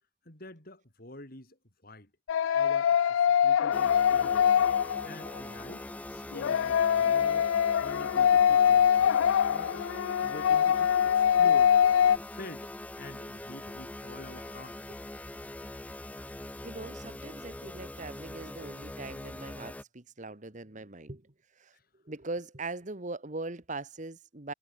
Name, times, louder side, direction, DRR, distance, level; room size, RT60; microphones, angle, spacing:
voice 1, 0.3-1.6 1.8-2.1 2.5-4.5 5.0-7.5 7.8-9.2 9.5-11.7 12.1-12.7 13.0-14.8, left 1 dB, 50° left, 5.6 m, -47 dB
sound 1, 2.3-5.4 6.3-12.2, left 8 dB, 85° left, 0.3 m, -23 dB
sound 2, 3.7-19.8, left 1 dB, 5° left, 0.3 m, -42 dB
voice 2, 16.6-21.7 22.0-24.5, right 2 dB, 40° right, 1.6 m, -41 dB
head